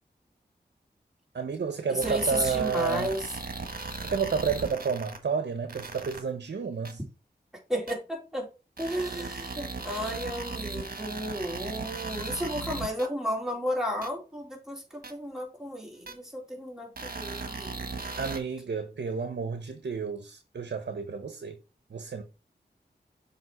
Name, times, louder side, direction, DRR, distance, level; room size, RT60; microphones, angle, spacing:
voice 1, 1.3-3.1 4.0-7.0 18.2-21.5 21.9-22.2, right 5 dB, 75° right, 0.9 m, -31 dB
voice 2, 1.9-3.3 7.7-8.5 8.8-17.8, equal, 5° right, 3.4 m, -33 dB
sound 1, 2.0-5.2 5.7-6.2 6.9-7.0 7.9-8.0 8.8-13.1 14.0-14.1 15.0-15.1 16.1-16.2 17.0-18.4, right 3 dB, 55° right, 1.4 m, -37 dB
7.2 x 3.4 x 4.7 m
cardioid pair, 50°, 18 cm